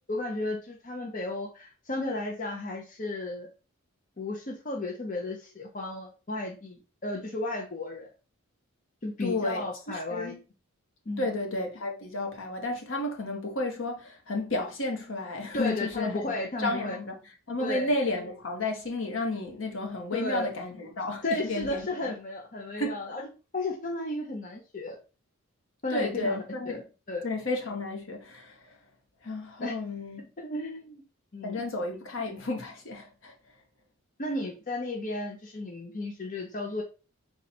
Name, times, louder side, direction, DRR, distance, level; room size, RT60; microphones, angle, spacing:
voice 1, 0.1-3.5 4.2-8.1 9.0-10.3 11.1-11.3 15.5-17.0 17.6-17.9 20.1-20.5 21.2-23.2 23.5-25.0 25.8-26.8 27.1-27.2 29.6-29.7 30.4-31.0 31.3-31.6 34.2-36.8, left 2 dB, 35° left, 0.7 m, -34 dB
voice 2, 9.2-10.4 11.2-16.3 16.6-17.1 17.5-22.1 22.8-23.0 25.9-26.8 27.2-28.8 29.2-30.3 31.4-33.3, left 2 dB, 65° left, 1.0 m, -32 dB
4.2 x 2.4 x 4.1 m
head